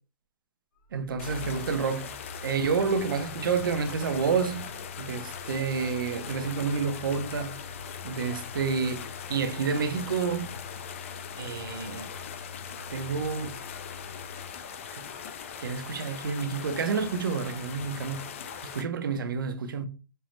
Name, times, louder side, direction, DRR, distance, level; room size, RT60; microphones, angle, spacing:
sound 1, 0.8-14.5, left 4 dB, 60° left, 1.1 m, -45 dB
voice 1, 0.9-4.7 5.0-7.6 8.0-10.5 11.4-12.1 12.9-13.6 14.9-15.1 15.6-18.3 18.6-19.9, right 5 dB, 85° right, 0.7 m, -29 dB
sound 2, 1.2-18.8, left 7 dB, 40° left, 0.4 m, -41 dB
5.5 x 2.0 x 3.1 m
hypercardioid pair, 170°, 11 cm